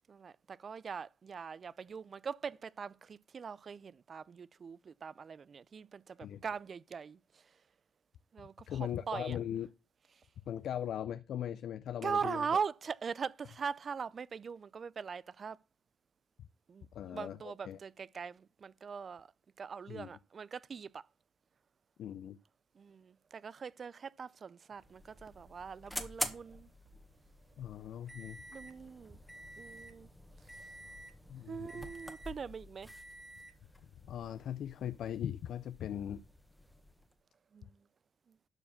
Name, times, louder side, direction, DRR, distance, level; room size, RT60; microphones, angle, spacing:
voice 1, 0.1-7.4 8.3-9.4 12.0-15.6 16.7-19.3 19.6-21.1 22.8-26.7 28.5-29.2 29.6-30.1 30.6-30.7 31.5-32.9 37.5-37.8 38.3-38.4, right 6 dB, 45° right, 0.4 m, -41 dB
voice 2, 8.7-9.7 10.5-12.5 16.9-17.8 19.9-20.1 22.0-22.4 27.6-28.4 31.3-31.8 34.0-36.2, left 10 dB, 70° left, 0.5 m, -39 dB
sound 1, 24.7-37.1, equal, ahead, 1.4 m, -47 dB
12.5 x 4.8 x 7.0 m
cardioid pair, 90°, 0 cm